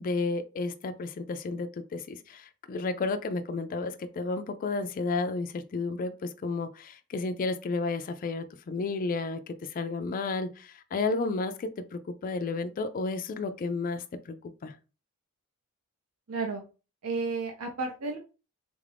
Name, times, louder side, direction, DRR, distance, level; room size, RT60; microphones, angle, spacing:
voice 1, 0.0-14.8, left 3 dB, 40° left, 0.3 m, -32 dB
voice 2, 16.3-16.6 17.0-18.2, right 4 dB, 70° right, 0.6 m, -32 dB
3.5 x 2.5 x 3.3 m
head